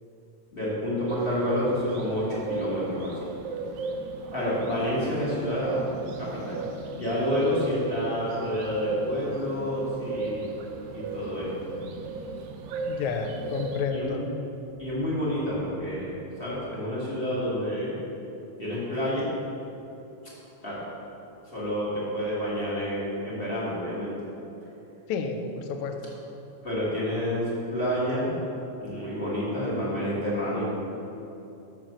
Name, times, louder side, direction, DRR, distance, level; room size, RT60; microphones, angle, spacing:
voice 1, 0.5-3.3 4.3-5.8 6.2-6.6 6.9-10.5 10.9-11.8 13.9-14.2 14.8-18.0 18.6-19.3 20.6-20.8 21.5-24.1 26.6-28.4 28.8-30.6, equal, 20° left, -8 dB, 1.7 m, -29 dB
sound 1, 1.1-13.8, right 3 dB, 90° right, 2.0 m, -36 dB
voice 2, 12.9-14.3 25.1-26.0, left 5 dB, 80° left, 5 dB, 2.0 m, -30 dB
6.9 x 5.9 x 6.3 m, 2.9 s
omnidirectional pair, 3.3 m